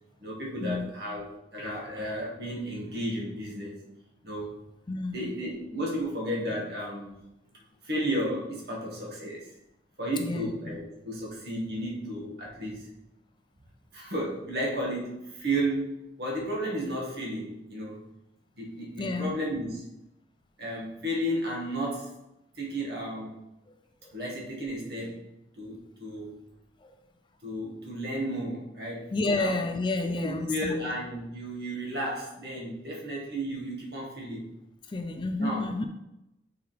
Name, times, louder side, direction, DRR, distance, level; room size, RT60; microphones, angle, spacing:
voice 1, 0.0-3.8 4.2-4.5 5.1-7.2 7.8-9.5 10.0-12.9 13.9-18.0 18.5-19.9 20.6-22.1 22.5-23.4 24.1-25.3 25.6-26.4 27.4-29.6 30.0-34.5 35.4-35.7, right 1 dB, 55° right, -3 dB, 1.7 m, -33 dB
voice 2, 4.9-5.3 10.2-10.8 19.0-19.4 24.0-24.1 26.8-26.9 29.1-30.9 34.9-35.9, left 2 dB, 25° left, 6 dB, 0.3 m, -30 dB
6.6 x 4.5 x 3.3 m, 0.91 s
head